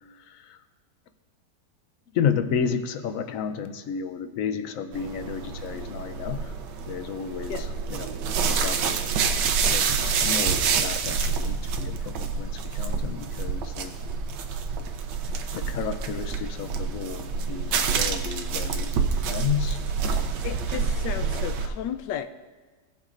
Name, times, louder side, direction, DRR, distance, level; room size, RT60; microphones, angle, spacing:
voice 1, 2.1-6.4 6.9-8.1 8.5-9.0 9.7-14.0 15.5-20.4, left 7 dB, 65° left, 9 dB, 0.8 m, -32 dB
sound 1, 4.9-21.7, right 5 dB, 85° right, 1.4 m, -27 dB
voice 2, 20.4-22.3, left 9 dB, 85° left, 9 dB, 1.2 m, -33 dB
17.0 x 7.2 x 2.5 m, 1.4 s
omnidirectional pair, 1.9 m